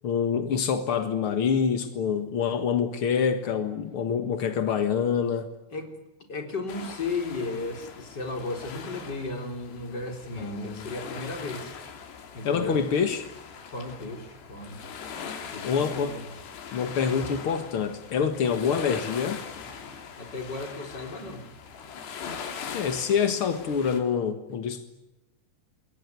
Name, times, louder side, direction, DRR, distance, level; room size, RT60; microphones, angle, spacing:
voice 1, 0.0-5.5 10.4-10.8 12.4-13.3 15.6-16.1 16.7-19.4 22.7-24.8, left 7 dB, 60° left, 8 dB, 1.4 m, -26 dB
voice 2, 6.3-11.8 12.3-12.9 13.7-14.8 15.5-16.3 20.2-21.5, left 3 dB, 25° left, 4 dB, 4.0 m, -35 dB
sound 1, 6.7-24.0, left 6 dB, 80° left, 4.8 m, -41 dB
28.5 x 22.0 x 9.6 m, 0.99 s
omnidirectional pair, 4.8 m